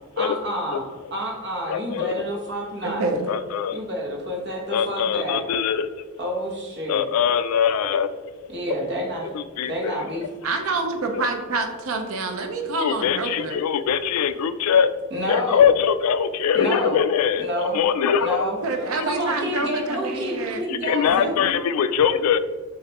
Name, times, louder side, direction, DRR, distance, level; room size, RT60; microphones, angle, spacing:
voice 1, 0.2-3.1 3.7-5.5 6.2-7.1 8.5-9.3 9.6-10.3 15.1-15.7 16.5-17.0 17.4-17.8 18.2-18.6 19.0-21.3, equal, 50° right, 0 dB, 1.0 m, -29 dB
voice 2, 1.7-2.1 3.3-3.8 4.7-5.9 6.9-8.1 9.3-10.1 11.1-11.3 12.7-14.9 15.3-18.4 18.9-19.0 20.8-22.4, left 7 dB, 85° left, 13 dB, 0.3 m, -22 dB
voice 3, 2.8-3.3 10.4-13.6 18.6-20.6 21.1-21.6, right 3 dB, 75° right, 5 dB, 0.6 m, -27 dB
6.4 x 2.5 x 2.9 m, 1.3 s
head